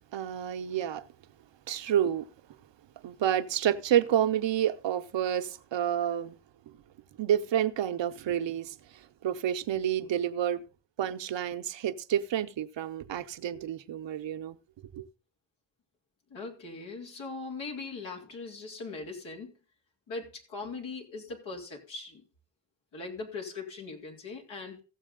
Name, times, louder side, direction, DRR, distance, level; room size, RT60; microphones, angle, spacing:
voice 1, 0.1-1.0 1.7-2.3 3.0-6.4 7.2-8.7 9.2-10.6 11.0-14.6 14.9-15.0, right 10 dB, 70° right, 0.9 m, -29 dB
voice 2, 16.3-19.5 20.1-22.2 22.9-24.8, left 3 dB, 80° left, 2.9 m, -40 dB
15.5 x 7.2 x 3.8 m
supercardioid pair, 40°, 46 cm